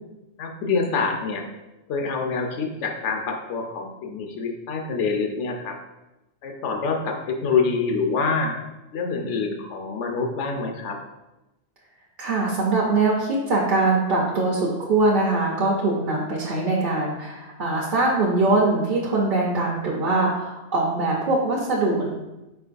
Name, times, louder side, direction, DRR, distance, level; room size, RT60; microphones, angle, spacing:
voice 1, 0.4-1.4 1.9-5.8 6.4-8.5 8.9-11.0, left 4 dB, 90° left, 3 dB, 1.0 m, -26 dB
voice 2, 12.2-22.1, right 2 dB, 55° right, -3 dB, 0.7 m, -22 dB
4.6 x 4.5 x 2.5 m, 1.0 s
omnidirectional pair, 1.2 m